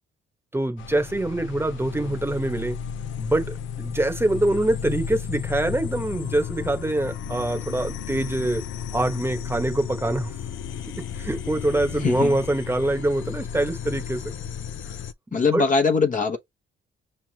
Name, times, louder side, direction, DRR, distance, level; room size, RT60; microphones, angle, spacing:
voice 1, 0.5-2.8 3.2-8.6 8.9-10.3 10.9-14.2 15.3-15.6, right 1 dB, 10° right, 1.1 m, -25 dB
sound 1, 0.8-15.1, left 8 dB, 75° left, 0.5 m, -34 dB
voice 2, 12.0-12.4 15.3-16.4, left 4 dB, 40° left, 1.0 m, -21 dB
5.8 x 3.2 x 2.8 m
cardioid pair, 90°, 20 cm